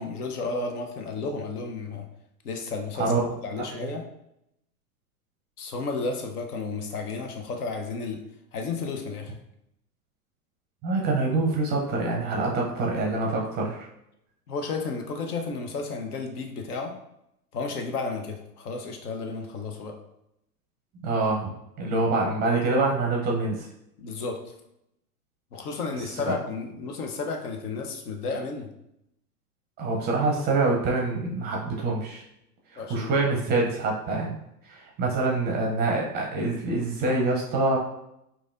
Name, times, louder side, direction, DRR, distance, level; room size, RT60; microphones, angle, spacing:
voice 1, 0.0-2.0 2.4-3.1 3.4-4.0 5.6-8.2 8.5-9.3 14.5-16.9 17.5-19.9 24.0-24.4 25.5-28.7 32.8-33.1, left 4 dB, 65° left, 3 dB, 0.9 m, -32 dB
voice 2, 3.0-3.3 3.7-3.8 10.8-13.9 21.0-21.5 21.8-23.7 26.0-26.4 29.8-32.2 32.7-34.4 34.7-37.8, right 3 dB, 20° right, -1 dB, 0.5 m, -25 dB
4.7 x 2.6 x 2.5 m, 0.81 s
hypercardioid pair, 100°, 49 cm